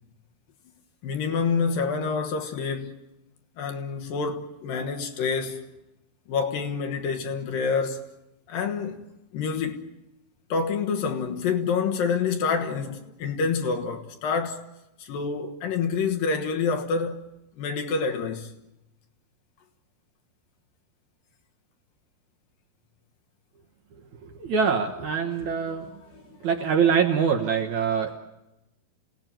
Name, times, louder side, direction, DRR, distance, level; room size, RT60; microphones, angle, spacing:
voice 1, 1.0-3.0 3.6-5.7 6.3-8.1 8.5-9.0 9.3-9.9 10.5-14.6 15.0-17.2 17.6-18.5 26.1-26.4, left 5 dB, 65° left, 2.9 m, -27 dB
voice 2, 24.2-26.0 26.4-28.2, right 6 dB, 60° right, 2.1 m, -24 dB
27.0 x 18.0 x 9.0 m
omnidirectional pair, 4.6 m